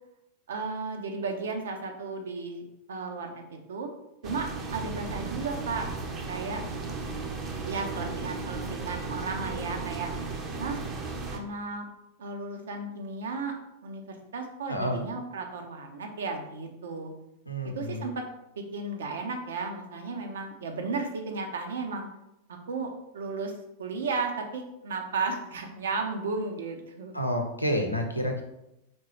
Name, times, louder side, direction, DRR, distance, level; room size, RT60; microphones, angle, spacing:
voice 1, 0.5-3.9 4.2-5.9 6.3-6.6 7.6-10.1 10.6-10.8 11.3-11.9 12.2-13.5 13.8-14.0 14.3-17.1 17.7-18.2 18.6-22.1 22.5-23.5 23.8-27.1, right 4 dB, 65° right, 4 dB, 0.7 m, -34 dB
sound 1, 4.2-11.4, right 3 dB, 30° right, 0.7 m, -35 dB
voice 2, 14.7-15.0 17.5-18.0 27.1-28.4, equal, 90° left, 3 dB, 0.6 m, -29 dB
4.4 x 3.7 x 3.2 m, 0.87 s
figure-of-eight pair, 90°, 0 cm